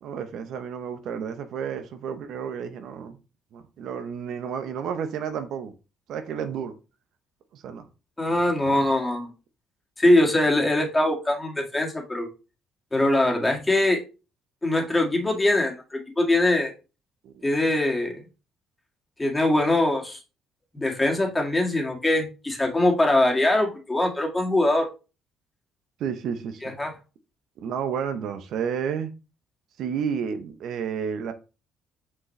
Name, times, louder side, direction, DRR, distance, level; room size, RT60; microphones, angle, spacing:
voice 1, 0.0-3.2 3.5-5.7 6.1-6.7 7.5-7.8 8.7-8.8 17.2-17.5 26.0-26.6 27.6-29.1 29.8-31.3, right 7 dB, 70° right, 0.8 m, -31 dB
voice 2, 8.2-9.3 10.0-12.3 12.9-14.0 14.6-16.7 17.4-18.1 19.2-20.2 20.7-24.9 26.6-26.9, left 1 dB, 15° left, 2.0 m, -22 dB
6.0 x 4.9 x 3.2 m
cardioid pair, 85°, 0 cm